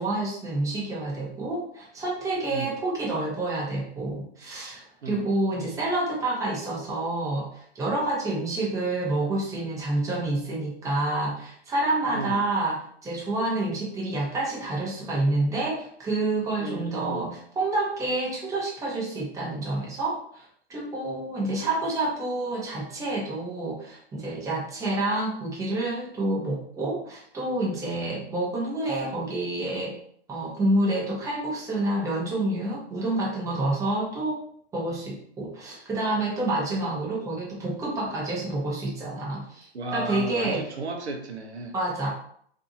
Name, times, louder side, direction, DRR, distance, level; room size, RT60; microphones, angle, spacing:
voice 1, 0.0-30.0 30.3-34.4 34.7-40.7 41.7-42.1, right 2 dB, 10° right, -4 dB, 0.7 m, -28 dB
voice 2, 12.1-12.5 16.6-17.3 39.7-41.7, right 3 dB, 90° right, 2 dB, 0.7 m, -34 dB
2.6 x 2.5 x 2.6 m, 0.63 s
hypercardioid pair, 120°, 32 cm